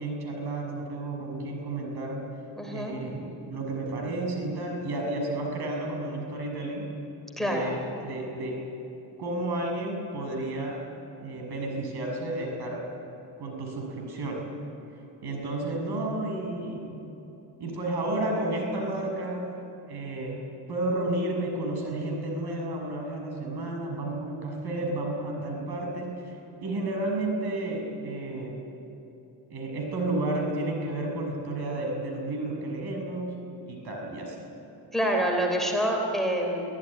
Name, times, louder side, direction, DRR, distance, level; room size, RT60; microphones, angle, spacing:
voice 1, 0.0-2.2 2.7-6.9 7.3-8.6 9.2-10.8 11.2-12.8 13.4-14.4 15.2-17.0 17.6-19.5 19.9-20.4 20.7-26.3 26.6-28.6 29.5-33.4 33.7-34.4, right 2 dB, 55° right, 1 dB, 6.7 m, -32 dB
voice 2, 2.6-2.9 7.4-7.7 34.9-36.6, equal, ahead, 1 dB, 3.5 m, -26 dB
25.0 x 16.0 x 9.9 m, 2.9 s
cardioid pair, 110°, 47 cm